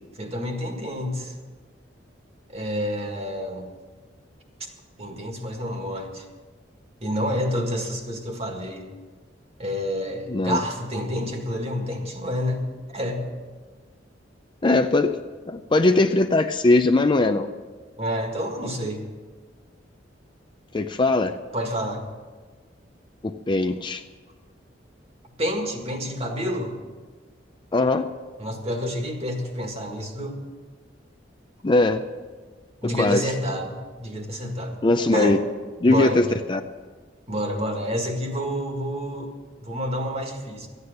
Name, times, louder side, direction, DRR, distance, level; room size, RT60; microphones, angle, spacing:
voice 1, 0.2-1.3 2.5-3.7 5.0-6.3 7.0-8.9 9.6-12.6 12.9-13.2 18.0-19.0 21.5-22.0 25.4-26.7 28.4-30.4 32.8-34.8 35.1-35.4 35.9-36.2 37.3-39.3 39.6-40.7, equal, 35° right, 3 dB, 1.8 m, -28 dB
voice 2, 10.3-10.6 14.6-15.2 15.5-17.5 20.7-21.4 23.2-24.0 27.7-28.1 31.6-32.0 32.8-33.3 34.8-35.4 35.8-36.6, left 2 dB, 25° left, 8 dB, 0.5 m, -20 dB
13.5 x 9.6 x 6.6 m, 1.4 s
head